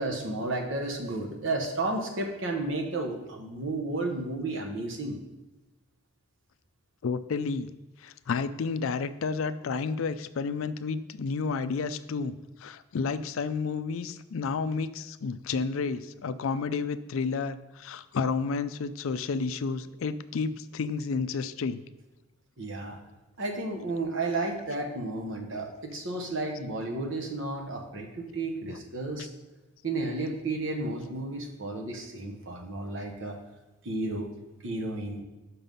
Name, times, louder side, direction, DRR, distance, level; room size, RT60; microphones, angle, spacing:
voice 1, 0.0-5.2 22.6-23.0 23.4-29.3 29.8-33.4 33.8-34.3 34.6-35.2, right 2 dB, 60° right, 2 dB, 1.1 m, -32 dB
voice 2, 7.0-7.7 8.0-21.8 28.7-28.8, left 5 dB, 70° left, 13 dB, 0.4 m, -31 dB
6.0 x 5.7 x 5.3 m, 1.1 s
head